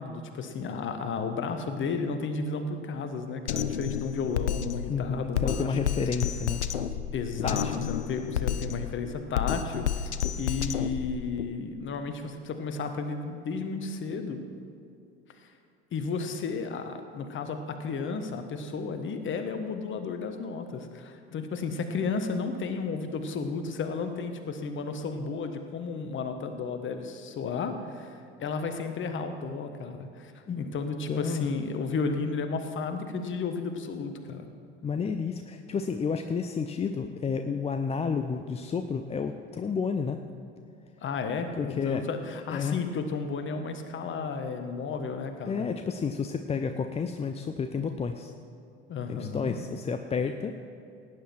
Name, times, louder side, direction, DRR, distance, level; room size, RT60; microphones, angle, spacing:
voice 1, 0.0-5.8 7.1-14.4 15.9-30.3 30.6-34.5 41.0-45.7 48.9-49.6, left 4 dB, 35° left, 7 dB, 1.4 m, -33 dB
Drum kit, 3.5-11.5, left 9 dB, 80° left, 0.6 m, -31 dB
voice 2, 4.9-6.6 7.4-7.8 30.5-30.6 31.1-31.5 34.8-40.2 41.5-42.0 42.5-42.8 45.5-48.3 49.1-50.5, left 5 dB, 20° left, 7 dB, 0.6 m, -31 dB
17.5 x 9.7 x 4.6 m, 2.6 s
figure-of-eight pair, 65°, 33 cm